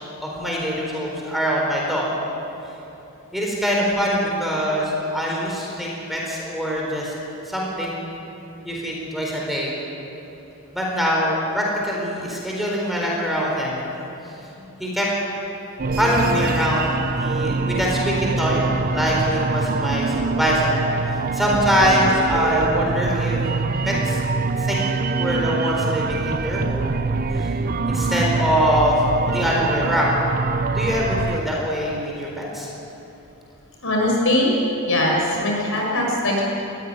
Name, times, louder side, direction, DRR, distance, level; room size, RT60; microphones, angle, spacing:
voice 1, 0.2-2.1 3.3-7.1 7.5-8.1 8.6-9.7 10.7-13.8 14.8-15.1 16.0-18.6 18.9-23.5 23.8-24.2 24.6-24.8 25.2-27.0 27.3-27.5 27.9-30.1 30.7-32.7, equal, ahead, -3 dB, 4.4 m, -23 dB
sound 1, 15.8-31.4, right 3 dB, 40° right, 0.6 m, -24 dB
voice 2, 33.8-34.5 34.8-36.4, left 1 dB, 65° left, -2 dB, 6.4 m, -21 dB
21.0 x 17.0 x 9.8 m, 2.9 s
head